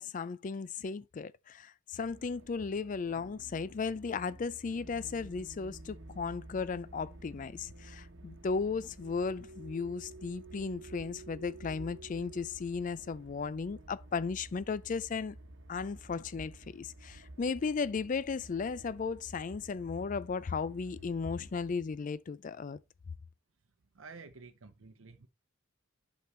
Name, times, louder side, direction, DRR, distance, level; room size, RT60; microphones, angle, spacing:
voice 1, 0.0-15.4 15.7-22.8, left 5 dB, 40° left, 0.4 m, -35 dB
sound 1, 2.0-21.7, right 2 dB, 65° right, 1.1 m, -51 dB
voice 2, 23.9-25.3, right 4 dB, 85° right, 0.7 m, -51 dB
8.2 x 6.1 x 3.2 m
head